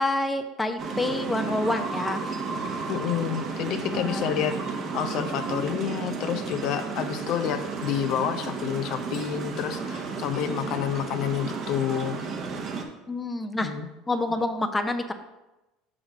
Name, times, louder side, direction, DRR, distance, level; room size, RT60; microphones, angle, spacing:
voice 1, 0.0-2.2 3.9-4.5 13.1-13.7 14.1-15.1, left 2 dB, 15° left, 7 dB, 0.6 m, -28 dB
sound 1, 0.8-12.8, right 4 dB, 45° right, 1.0 m, -33 dB
voice 2, 2.9-4.6 4.9-12.2 13.6-13.9, left 9 dB, 60° left, 8 dB, 0.6 m, -29 dB
6.2 x 4.9 x 4.9 m, 1.0 s
hypercardioid pair, 80°, 0 cm